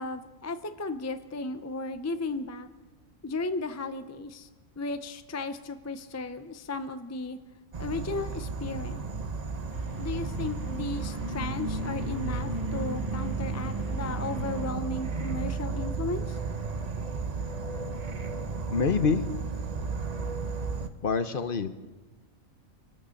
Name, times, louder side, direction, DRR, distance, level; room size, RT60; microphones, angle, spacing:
voice 1, 0.0-2.7 3.2-4.5 4.8-7.4 7.8-9.0 10.0-16.4, left 3 dB, 25° left, 9 dB, 0.3 m, -35 dB
Insect / Frog, 7.7-20.9, right 4 dB, 35° right, 0.8 m, -33 dB
sound 1, 9.7-14.7, right 1 dB, 15° right, 2.0 m, -50 dB
voice 2, 18.7-19.3 21.0-21.7, left 5 dB, 45° left, 10 dB, 0.8 m, -26 dB
25.0 x 8.7 x 6.5 m, 1.2 s
omnidirectional pair, 1.4 m